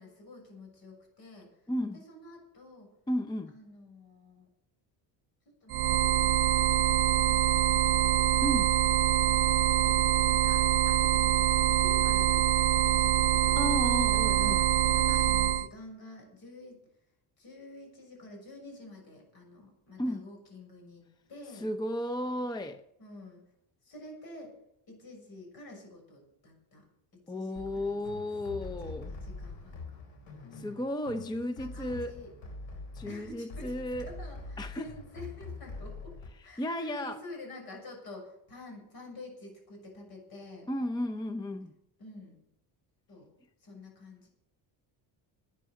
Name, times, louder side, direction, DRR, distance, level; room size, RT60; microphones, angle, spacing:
voice 1, 0.0-1.6 2.1-2.9 3.5-4.5 5.6-8.4 9.3-10.0 10.3-13.7 14.1-16.8 17.4-21.7 23.0-23.4 23.8-24.5 24.9-26.8 27.3-28.0 28.6-30.0 30.4-30.7 31.4-32.3 33.0-33.7 34.1-36.2 36.4-40.7 42.0-42.4 43.1-43.3 43.6-44.3, left 2 dB, 50° left, 6.6 m, -49 dB
voice 2, 1.7-2.0 3.1-3.5 8.4-8.8 13.6-14.7 20.0-20.3 21.5-22.8 27.3-29.1 30.5-32.1 32.9-34.1 34.6-34.9 36.6-37.2 40.7-41.7, left 1 dB, 10° left, 0.6 m, -34 dB
sound 1, 5.7-15.7, right 11 dB, 55° right, 0.7 m, -25 dB
sound 2, 27.6-36.3, left 3 dB, 85° left, 4.1 m, -44 dB
12.0 x 9.2 x 7.6 m
cardioid pair, 130°, 45 cm